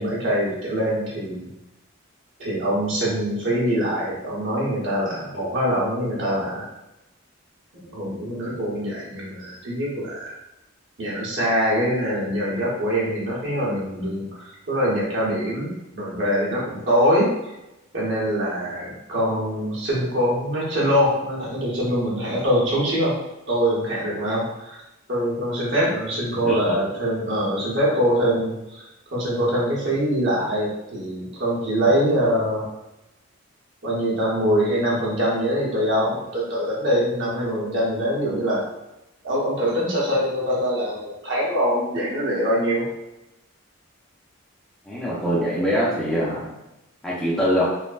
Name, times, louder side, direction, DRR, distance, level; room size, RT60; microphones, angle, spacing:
voice 1, 0.0-1.5 2.4-6.7 7.8-10.3 11.0-17.3 17.9-23.2 23.5-24.8 25.1-32.7 33.8-38.6 39.2-42.9, equal, 55° right, -6 dB, 0.8 m, -23 dB
voice 2, 26.4-26.8 44.9-46.5 47.0-47.7, equal, ahead, -8 dB, 0.4 m, -23 dB
3.2 x 2.0 x 2.4 m, 0.93 s
head